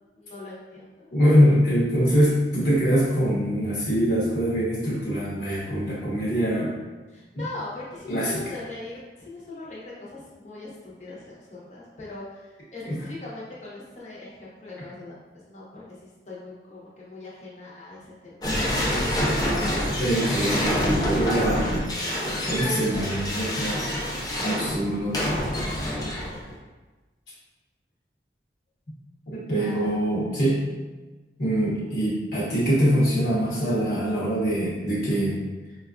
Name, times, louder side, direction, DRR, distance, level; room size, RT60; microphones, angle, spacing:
voice 1, 0.1-1.1 7.1-18.8 25.8-26.5 29.5-30.0, left 2 dB, 40° left, -6 dB, 0.8 m, -41 dB
voice 2, 1.1-6.7 7.4-7.5 8.1-8.4 12.8-13.0 20.0-21.9 22.5-23.8 24.4-25.2 29.3-30.6 31.4-35.4, equal, 65° left, -7 dB, 0.9 m, -23 dB
sound 1, 18.4-26.6, equal, 20° left, 0.5 m, -26 dB
4.5 x 2.3 x 2.3 m, 1.2 s
head